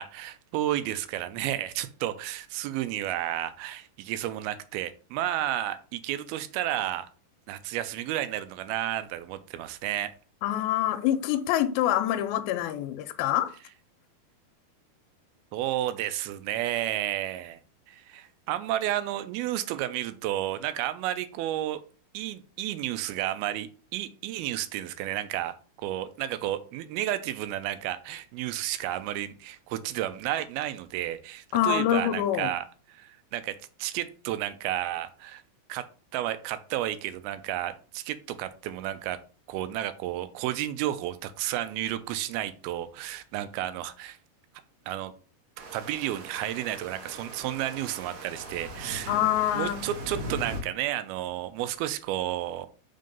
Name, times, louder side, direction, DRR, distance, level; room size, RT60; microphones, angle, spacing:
voice 1, 0.0-7.1 7.5-10.1 15.5-17.6 17.9-21.8 22.1-32.6 32.9-33.5 33.8-35.4 35.7-35.8 36.1-39.2 39.5-44.2 44.9-45.1 45.7-49.2 49.6-52.7, right 13 dB, 85° right, 2.5 m, -32 dB
voice 2, 10.4-13.5 31.5-32.5 49.1-49.9, left 12 dB, 85° left, 2.4 m, -26 dB
sound 1, 45.6-50.6, right 1 dB, 65° right, 2.1 m, -40 dB
Wind instrument woodwind instrument, 47.5-51.7, left 3 dB, 70° left, 2.0 m, -55 dB
5.5 x 3.9 x 5.2 m
omnidirectional pair, 4.3 m